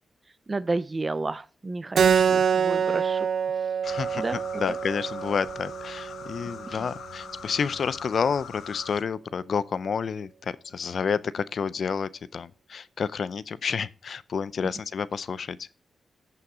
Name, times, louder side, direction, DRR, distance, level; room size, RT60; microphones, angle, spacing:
voice 1, 0.5-3.3 4.1-4.4 4.7-4.8 6.7-6.8, right 3 dB, 30° right, 0.5 m, -31 dB
Keyboard (musical), 2.0-7.1, right 7 dB, 75° right, 0.8 m, -26 dB
sound 1, 3.8-9.0, left 7 dB, 90° left, 1.1 m, -43 dB
voice 2, 3.8-15.7, left 6 dB, 65° left, 0.6 m, -30 dB
15.5 x 5.8 x 3.8 m
cardioid pair, 85°, 0 cm